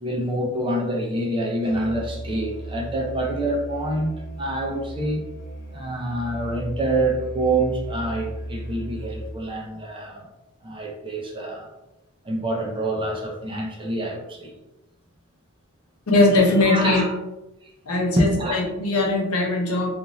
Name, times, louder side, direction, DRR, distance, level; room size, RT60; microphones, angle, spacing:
voice 1, 0.0-5.2 5.7-10.3 10.6-11.7 12.2-14.5 16.6-17.1 17.6-17.7 18.2-18.5, right 1 dB, 25° right, -1 dB, 0.5 m, -26 dB
Musical instrument, 1.6-9.4, right 1 dB, 50° left, 0.8 m, -36 dB
voice 2, 16.1-17.1 17.9-19.9, left 2 dB, 80° left, -1 dB, 0.7 m, -20 dB
2.5 x 2.4 x 3.0 m, 0.96 s
head